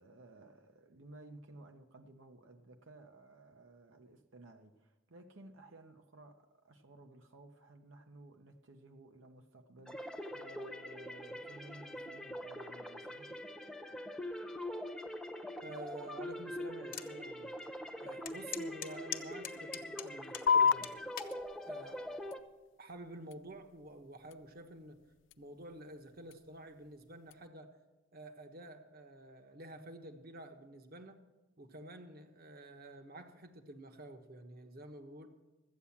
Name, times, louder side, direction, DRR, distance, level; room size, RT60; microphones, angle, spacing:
voice 1, 0.0-13.4, right 2 dB, 85° right, 0.9 m, -56 dB
sound 1, 9.9-22.4, left 1 dB, 5° left, 0.8 m, -44 dB
voice 2, 15.6-17.6 18.0-21.0 21.7-22.0 22.8-25.0 25.4-27.8 28.1-31.2 31.6-35.3, right 1 dB, 50° right, 1.1 m, -50 dB
sound 2, 16.9-17.1 17.6-17.7 18.3-20.5 20.8-21.4 22.1-22.4, left 10 dB, 45° left, 1.1 m, -42 dB
sound 3, 20.5-27.5, left 6 dB, 65° left, 0.3 m, -36 dB
13.5 x 8.4 x 7.2 m
head